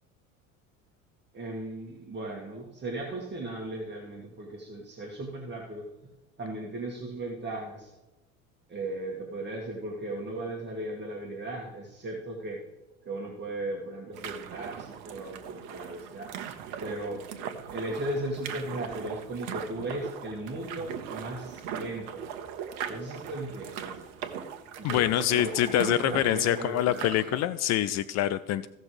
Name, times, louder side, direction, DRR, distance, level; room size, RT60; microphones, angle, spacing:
voice 1, 1.3-5.9 6.4-7.9 8.7-12.6 13.0-16.4 16.8-17.2 17.7-22.2 22.9-24.0 24.8-27.2, right 1 dB, 25° right, -1 dB, 2.0 m, -36 dB
sound 1, 14.1-27.5, right 8 dB, 65° right, 1.3 m, -39 dB
voice 2, 24.8-28.7, left 13 dB, 40° left, 15 dB, 0.5 m, -26 dB
16.5 x 6.5 x 3.3 m, 1.0 s
hypercardioid pair, 75°, 41 cm